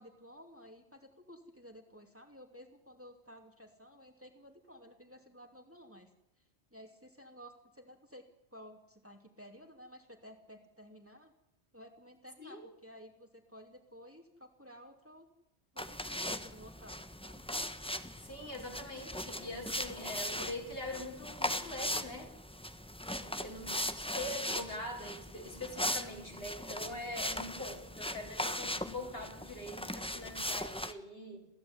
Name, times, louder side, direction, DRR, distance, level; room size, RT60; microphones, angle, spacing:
voice 1, 0.0-6.1 6.7-8.2 8.5-11.3 11.7-15.3 15.7-17.5 23.2-23.4, equal, 10° right, 4 dB, 3.1 m, -54 dB
voice 2, 12.4-12.7 18.2-22.3 23.4-31.5, left 1 dB, 55° left, 2 dB, 5.3 m, -43 dB
sound 1, 15.8-30.9, left 1 dB, 5° left, 1.3 m, -39 dB
28.5 x 16.5 x 9.8 m, 0.84 s
omnidirectional pair, 1.2 m